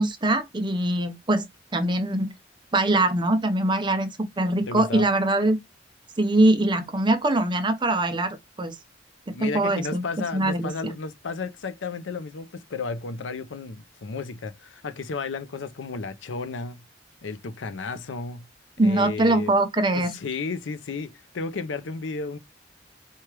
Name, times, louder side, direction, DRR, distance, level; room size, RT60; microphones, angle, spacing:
voice 1, 0.0-1.4 1.7-2.3 2.7-5.6 6.2-8.7 9.3-10.0 10.3-10.7 18.8-20.1, right 1 dB, 25° right, 0.6 m, -22 dB
voice 2, 4.6-5.1 9.3-16.8 17.2-18.5 18.8-19.5 19.9-22.4, left 4 dB, 90° left, 0.6 m, -33 dB
4.4 x 2.4 x 3.2 m
head